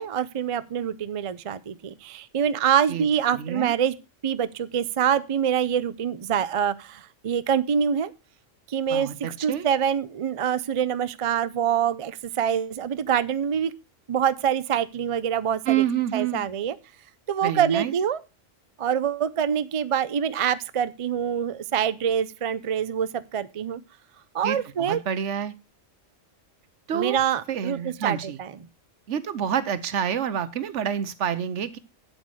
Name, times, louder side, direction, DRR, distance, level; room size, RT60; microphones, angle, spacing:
voice 1, 0.0-3.9 4.2-8.1 8.7-13.7 14.1-15.8 16.1-16.7 17.3-18.2 18.8-23.8 24.3-25.0 26.9-28.5, right 8 dB, 50° right, 15 dB, 0.4 m, -25 dB
voice 2, 3.4-3.7 8.9-9.6 15.7-16.4 17.4-17.9 24.4-25.5 26.9-27.2 27.5-28.4 29.1-31.8, right 9 dB, 75° right, 14 dB, 1.1 m, -28 dB
8.3 x 8.0 x 4.6 m, 0.28 s
omnidirectional pair, 1.3 m